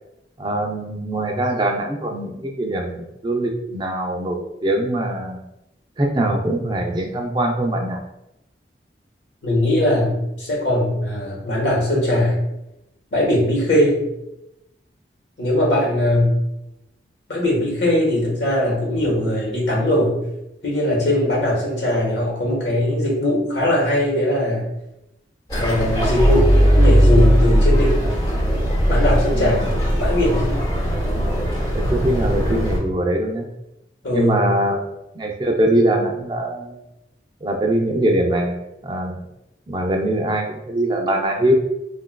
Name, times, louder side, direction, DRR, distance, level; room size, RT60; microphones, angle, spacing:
voice 1, 0.4-5.4 6.0-8.0 29.3-29.7 31.7-33.5 34.1-34.8 35.2-36.8 37.4-38.6 38.8-39.2 39.7-41.5, right 1 dB, 25° right, 2 dB, 0.4 m, -22 dB
voice 2, 9.4-12.4 13.1-14.0 15.4-16.4 17.3-20.2 20.6-24.7 25.6-28.1 28.9-29.6 30.0-30.5 34.0-34.3, left 1 dB, 80° left, -3 dB, 1.2 m, -20 dB
sound 1, 25.5-32.8, equal, 25° left, 0.7 m, -18 dB
3.6 x 2.4 x 2.2 m, 0.89 s
head